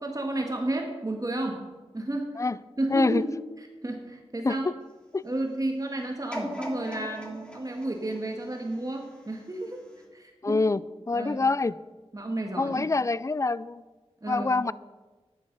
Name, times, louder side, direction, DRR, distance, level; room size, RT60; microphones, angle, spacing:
voice 1, 0.0-1.6 1.9-2.4 2.8-3.3 3.8-4.6 5.2-9.8 10.1-10.6 11.1-11.4 12.1-12.9 14.2-14.6, right 1 dB, 30° right, 1 dB, 1.9 m, -32 dB
voice 2, 2.9-3.2 4.4-4.7 5.1-5.2 10.4-11.8 12.6-13.8 14.3-14.7, left 3 dB, 30° left, 19 dB, 0.4 m, -26 dB
sound 1, 6.3-9.4 9.9-10.0, equal, 10° left, 3.0 m, -39 dB
11.5 x 10.5 x 5.5 m, 1.3 s
cardioid pair, 50°, 11 cm